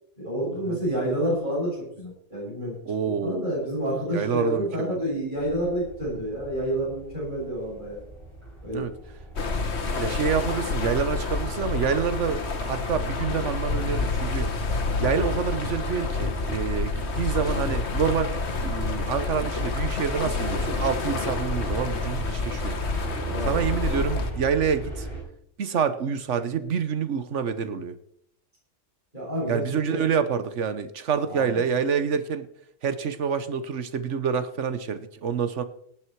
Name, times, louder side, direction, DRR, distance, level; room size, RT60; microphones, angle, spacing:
voice 1, 0.2-2.8 3.0-8.0 8.6-8.8 23.2-23.5 29.1-29.6 29.9-30.0 31.2-31.6, equal, 40° right, -5 dB, 7.5 m, -29 dB
voice 2, 2.9-3.5 4.1-5.0 8.7-8.9 10.0-14.5 15.0-22.8 23.5-25.1 25.6-28.0 29.5-32.5 32.8-35.6, right 6 dB, 75° right, 11 dB, 1.3 m, -27 dB
sound 1, 5.4-25.2, right 1 dB, 20° right, 5.0 m, -38 dB
sound 2, 9.4-24.3, left 4 dB, 60° left, 1.6 m, -28 dB
18.0 x 9.3 x 4.7 m, 0.70 s
omnidirectional pair, 1.2 m